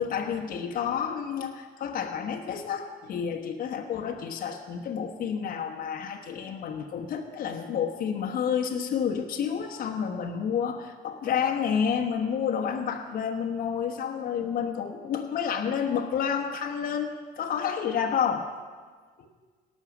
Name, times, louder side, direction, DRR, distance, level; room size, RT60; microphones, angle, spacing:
voice 1, 0.0-18.5 19.2-19.3, left 7 dB, 60° left, 3 dB, 1.1 m, -30 dB
18.0 x 6.4 x 6.1 m, 1.5 s
cardioid pair, 110°, 17 cm